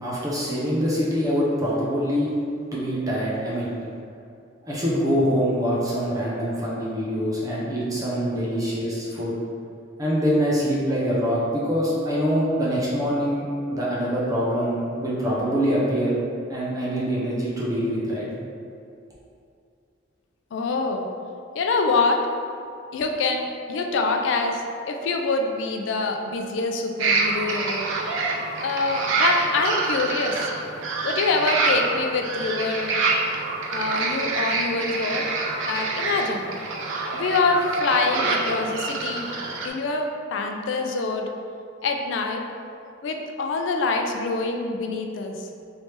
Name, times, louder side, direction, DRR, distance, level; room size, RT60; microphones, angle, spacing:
voice 1, 0.0-2.3 2.7-3.7 4.6-9.3 10.0-16.1 16.5-18.3, equal, 20° right, -6 dB, 0.5 m, -24 dB
voice 2, 20.5-21.1 21.5-22.2 22.9-24.6 24.9-27.8 28.6-30.4 31.0-33.0 33.7-35.2 35.6-36.4 37.1-39.3 39.6-41.3 41.8-42.4 43.0-45.5, left 3 dB, 65° left, 3 dB, 0.3 m, -25 dB
sound 1, 27.0-39.7, right 3 dB, 80° right, 0.5 m, -26 dB
3.2 x 2.7 x 3.2 m, 2.5 s
head